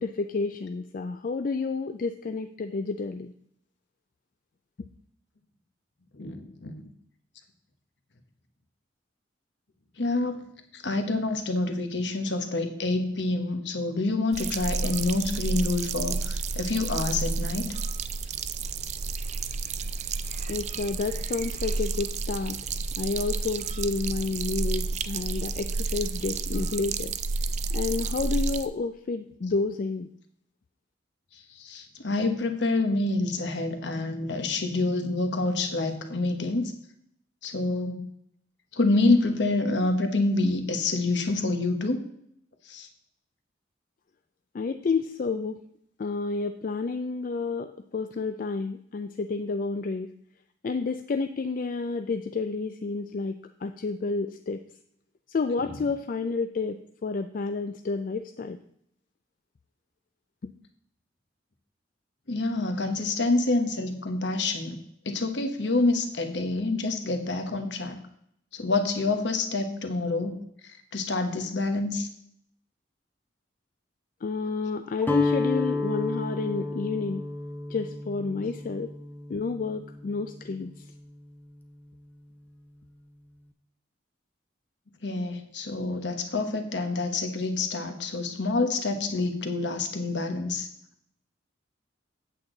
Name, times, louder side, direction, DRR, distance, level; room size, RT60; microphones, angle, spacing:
voice 1, 0.0-3.3 20.5-27.2 27.7-30.1 44.5-45.6 46.0-50.1 50.6-54.6 55.3-58.6 60.4-60.5 74.2-77.3 77.7-78.9 79.3-80.9, left 4 dB, 45° left, 8 dB, 0.3 m, -30 dB
voice 2, 6.1-6.9 10.0-10.4 10.7-17.8 26.5-26.7 31.3-36.6 37.4-38.0 38.7-42.1 42.6-42.9 55.6-55.7 62.3-64.8 65.0-68.0 68.5-70.4 70.9-72.1 85.0-90.7, left 2 dB, 65° left, 6 dB, 1.2 m, -27 dB
sound 1, 14.3-28.7, right 4 dB, 35° right, 0.4 m, -31 dB
Guitar, 75.0-81.1, left 3 dB, 10° left, 0.6 m, -32 dB
8.4 x 8.0 x 3.9 m, 0.71 s
head